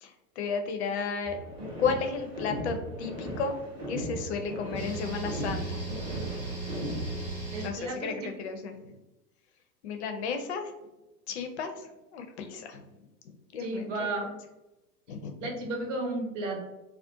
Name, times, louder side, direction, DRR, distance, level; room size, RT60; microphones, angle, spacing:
voice 1, 0.0-1.4 1.8-3.5 3.9-5.8 7.6-9.0 9.8-10.7 11.3-12.8 13.2-14.4 15.1-15.5, left 5 dB, 45° left, 6 dB, 0.4 m, -33 dB
sound 1, 1.3-7.3, equal, 10° right, 0.5 m, -37 dB
sound 2, 4.7-7.7, right 3 dB, 90° right, 0.9 m, -36 dB
voice 2, 7.5-8.3 13.6-14.3 15.4-16.6, right 2 dB, 50° right, 1 dB, 0.8 m, -33 dB
2.3 x 2.2 x 2.6 m, 0.97 s
figure-of-eight pair, 95°, 49 cm